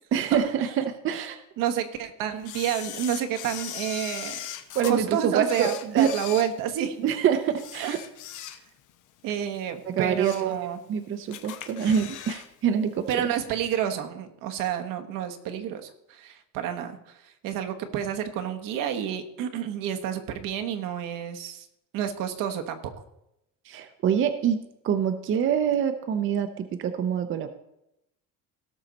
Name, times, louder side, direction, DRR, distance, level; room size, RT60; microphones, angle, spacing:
voice 1, 0.1-1.4 4.7-6.1 7.0-8.0 9.9-10.6 10.9-13.1 23.7-27.5, right 8 dB, 40° right, 8 dB, 0.6 m, -25 dB
voice 2, 1.6-4.4 4.9-7.0 7.8-8.0 9.2-10.8 11.8-12.1 13.1-21.7 21.9-22.9, right 9 dB, 75° right, 6 dB, 1.3 m, -29 dB
Camera, 2.4-4.9 5.4-7.1 7.5-8.9 9.3-9.4 9.9-10.5 10.9-11.0 11.3-12.5 12.7-12.8, left 11 dB, 65° left, 1.0 m, -39 dB
17.0 x 6.5 x 4.0 m, 0.83 s
cardioid pair, 180°, 33 cm